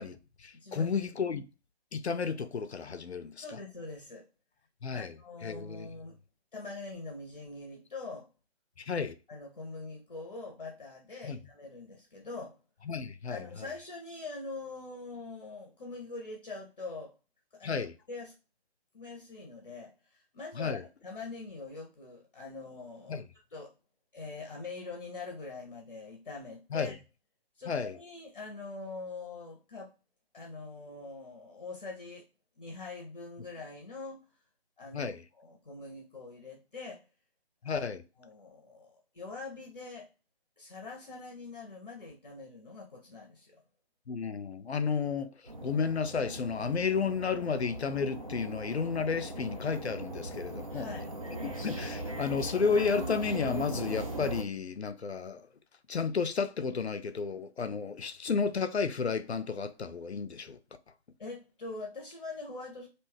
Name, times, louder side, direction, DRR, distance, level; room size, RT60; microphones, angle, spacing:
voice 1, 0.0-1.5 1.9-3.4 4.8-5.1 5.4-5.9 8.9-9.1 11.2-11.4 12.9-13.7 17.6-17.9 20.6-20.8 23.1-23.3 26.7-26.9 27.7-28.0 34.9-35.2 37.6-38.0 44.1-45.3 45.6-50.9 51.4-55.5 55.9-60.6, left 5 dB, 80° left, 0.5 m, -32 dB
voice 2, 0.5-1.0 3.4-4.3 4.9-6.2 6.5-8.3 9.3-12.6 13.3-17.1 17.5-18.4 18.9-23.2 23.5-23.7 24.1-27.0 27.6-29.9 30.3-32.3 32.6-34.2 34.8-37.0 37.6-37.9 38.2-40.1 40.6-43.6 50.7-51.1 61.2-62.9, left 3 dB, 40° left, 0.6 m, -43 dB
sound 1, 45.5-54.4, right 1 dB, 35° right, 0.4 m, -39 dB
2.6 x 2.2 x 3.4 m
figure-of-eight pair, 145°, 32 cm